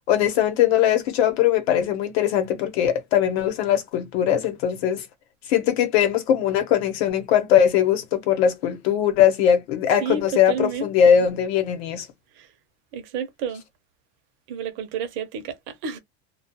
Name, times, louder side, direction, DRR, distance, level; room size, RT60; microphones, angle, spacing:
voice 1, 0.1-5.0 5.5-12.1, left 9 dB, 70° left, 0.9 m, -20 dB
voice 2, 10.0-11.2 12.4-12.5 12.9-13.6 14.5-16.0, right 6 dB, 35° right, 0.6 m, -31 dB
2.2 x 2.2 x 2.8 m
cardioid pair, 180°, 32 cm